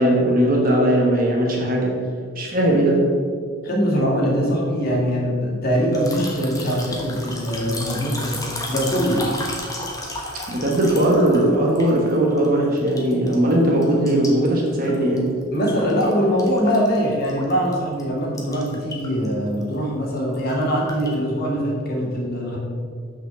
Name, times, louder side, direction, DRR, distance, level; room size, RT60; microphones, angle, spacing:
voice 1, 0.0-2.0 2.4-3.1 10.5-15.3, right 1 dB, 45° right, -2 dB, 1.3 m, -19 dB
voice 2, 3.6-9.3 15.5-22.6, equal, 50° left, -3 dB, 2.2 m, -22 dB
sound 1, 5.9-12.5 12.8-13.5 13.8-16.1 16.4-17.7 18.0-18.1 18.4-19.3 19.5-19.8 20.2-21.1, left 2 dB, 15° left, 1.2 m, -33 dB
6.2 x 5.2 x 6.8 m, 2.1 s
head